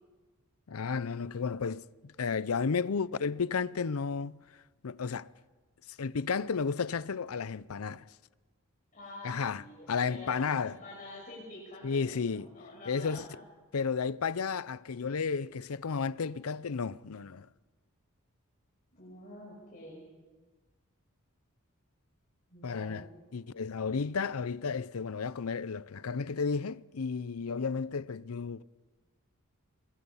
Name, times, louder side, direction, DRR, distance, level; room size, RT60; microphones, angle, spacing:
voice 1, 0.7-4.4 4.8-5.3 6.0-8.0 9.2-9.6 9.9-10.8 11.8-12.5 12.9-13.2 13.7-17.5 22.6-23.1 23.3-28.6, left 5 dB, 80° left, 0.6 m, -33 dB
voice 2, 8.9-13.4 19.0-20.0 22.5-23.1, left 1 dB, 40° left, 6.0 m, -48 dB
26.5 x 22.0 x 5.7 m
head